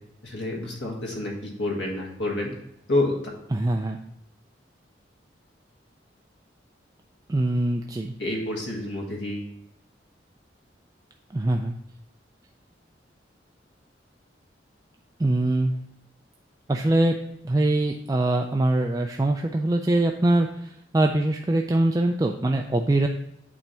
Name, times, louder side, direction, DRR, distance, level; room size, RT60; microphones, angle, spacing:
voice 1, 0.2-2.5 2.9-3.3 8.2-9.5, left 2 dB, 80° left, -1 dB, 1.7 m, -28 dB
voice 2, 3.5-4.0 7.3-8.1 11.3-11.7 15.2-15.7 16.7-17.1 17.4-23.1, right 2 dB, 20° right, 3 dB, 0.3 m, -23 dB
8.5 x 3.4 x 4.3 m, 0.81 s
head